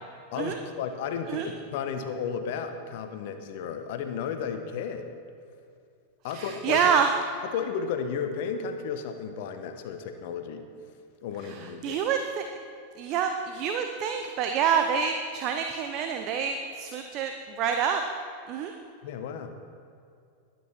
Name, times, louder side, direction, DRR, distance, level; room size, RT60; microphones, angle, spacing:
voice 1, 0.3-5.1 6.2-6.8 7.5-10.7 11.2-12.0 19.0-19.5, left 6 dB, 50° left, 7 dB, 1.2 m, -33 dB
voice 2, 6.3-7.1 11.4-11.6 11.8-12.5 13.0-17.3 17.6-18.0 18.5-18.7, right 7 dB, 40° right, 5 dB, 0.8 m, -27 dB
21.0 x 9.2 x 4.5 m, 2.4 s
figure-of-eight pair, 90°, 0 cm